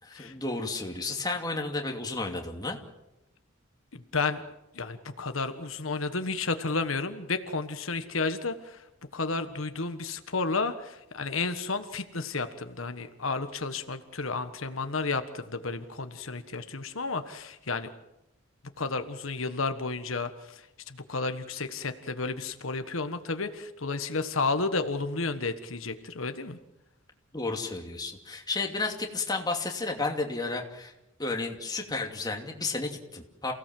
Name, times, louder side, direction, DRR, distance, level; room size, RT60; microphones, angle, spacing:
voice 1, 0.0-2.8 27.3-30.9 31.2-33.5, left 3 dB, 20° left, 2 dB, 2.7 m, -32 dB
voice 2, 4.1-4.4 4.7-8.8 9.1-17.9 18.8-26.6, left 3 dB, 80° left, 9 dB, 1.4 m, -32 dB
28.5 x 17.0 x 7.7 m, 0.90 s
head